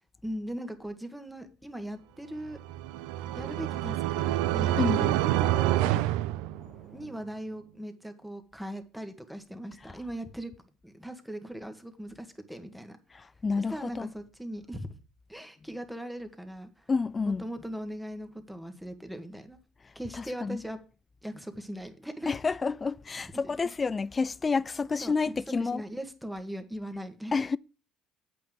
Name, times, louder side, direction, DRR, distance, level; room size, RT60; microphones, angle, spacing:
voice 1, 0.2-2.6 3.3-5.9 6.9-10.5 10.8-13.0 13.6-15.0 15.3-16.9 17.3-19.6 20.0-20.8 21.2-22.3 23.4-23.7 25.0-25.1 25.6-27.4, equal, 5° right, 1.7 m, -39 dB
sound 1, 2.5-7.1, right 14 dB, 85° right, 0.6 m, -27 dB
voice 2, 13.1-14.1 16.9-17.4 20.2-20.6 22.3-25.8 27.3-27.6, left 4 dB, 25° left, 0.4 m, -29 dB
8.5 x 5.4 x 7.7 m
supercardioid pair, 90°, 0 cm